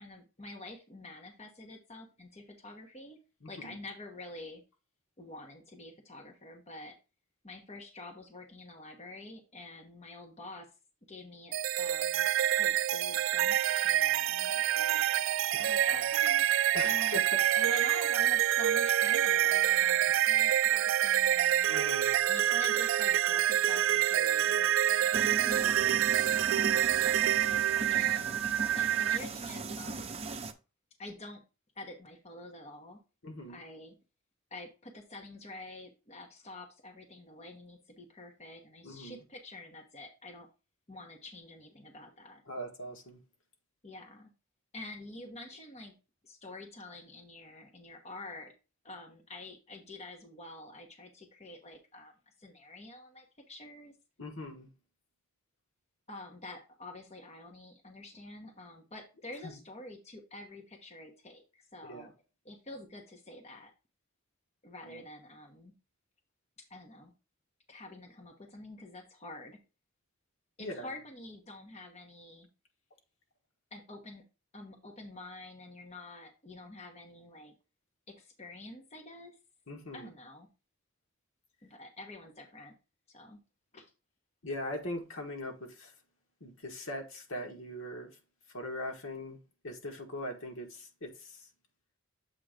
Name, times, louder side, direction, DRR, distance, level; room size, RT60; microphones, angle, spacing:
voice 1, 0.0-3.2 3.5-4.6 5.2-6.9 7.4-10.7 11.1-12.3 12.5-15.0 15.6-16.5 16.8-17.2 17.6-21.7 22.2-27.1 27.9-28.5 28.7-30.3 31.0-31.4 31.7-33.0 33.5-33.9 34.5-40.5 40.9-42.4 43.8-44.3 44.7-46.0 46.2-48.5 48.8-53.9 56.1-62.1 62.4-63.7 64.6-65.7 66.7-67.1 67.7-69.6 70.6-72.5 73.7-74.2 74.5-77.5 78.1-79.4 79.9-80.5 81.6-82.7 83.1-83.4 83.7-83.9, left 2 dB, 30° left, 1.0 m, -48 dB
voice 2, 3.4-3.8 15.5-16.0 16.7-17.5 21.7-22.2 33.2-33.6 38.8-39.2 42.5-43.2 54.2-54.7 59.4-59.5 61.8-62.1 64.8-65.0 70.6-70.9 79.7-80.1 84.4-85.9 86.4-88.1 88.5-89.4 89.6-91.5, left 1 dB, 75° left, 1.4 m, -41 dB
sound 1, 11.5-29.2, right 11 dB, 65° right, 0.3 m, -27 dB
sound 2, 25.1-30.5, right 3 dB, 30° right, 0.6 m, -39 dB
7.4 x 3.1 x 5.0 m
head